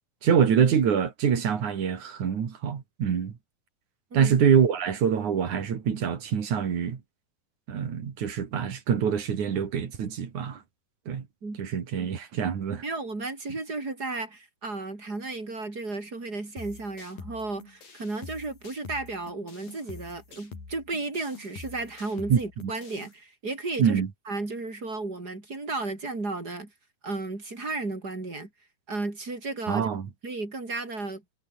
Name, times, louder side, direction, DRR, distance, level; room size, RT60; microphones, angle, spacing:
voice 1, 0.2-3.3 4.1-7.0 7.7-10.6 11.1-11.2 11.6-12.8 22.3-22.7 23.8-24.1 29.7-30.1, right 7 dB, 60° right, 3.9 m, -25 dB
voice 2, 12.8-26.7 27.0-28.5 28.9-29.9 30.2-31.2, right 3 dB, 25° right, 5.7 m, -34 dB
sound 1, 16.6-23.1, left 4 dB, 80° left, 8.5 m, -46 dB
omnidirectional pair, 4.0 m